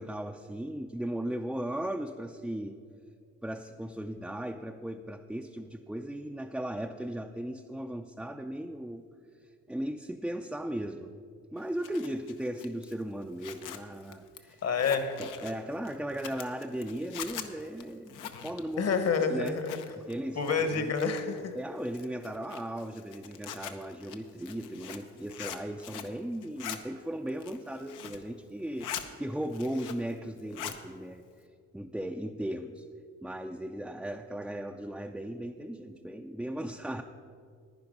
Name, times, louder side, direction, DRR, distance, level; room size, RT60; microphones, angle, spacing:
voice 1, 0.0-2.8 3.4-9.0 9.7-11.2 11.5-14.6 15.2-19.0 19.3-19.6 20.0-20.9 21.5-28.9 29.2-31.2 31.7-32.9 33.2-37.0, right 1 dB, 5° right, 3 dB, 0.4 m, -37 dB
Zipper (clothing), 11.6-20.1 20.4-21.4 21.9-26.2 26.4-26.8 27.3-28.3 28.6-29.1 29.4-30.1 30.4-30.8, left 9 dB, 90° left, 0.9 m, -43 dB
voice 2, 14.6-15.2 18.8-19.8 20.4-21.5, left 5 dB, 55° left, 9 dB, 1.3 m, -28 dB
10.5 x 9.8 x 5.3 m, 2.2 s
cardioid pair, 90°, 30 cm